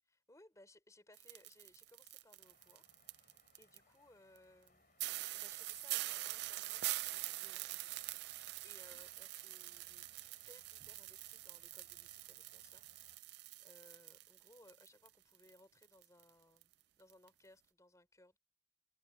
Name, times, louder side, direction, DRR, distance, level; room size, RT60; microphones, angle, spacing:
voice 1, 0.3-2.9 3.1-4.9 5.3-7.7 8.6-16.7 17.0-18.4, left 1 dB, 20° left, 3.8 m, -65 dB
sound 1, 1.1-3.8 4.4-4.5 4.7-4.8 5.0-15.1 15.3-16.3 16.6-16.7 17.1-17.3, right 17 dB, 60° right, 0.3 m, -44 dB
sound 2, 2.4-13.2, left 3 dB, 50° left, 5.0 m, -72 dB
head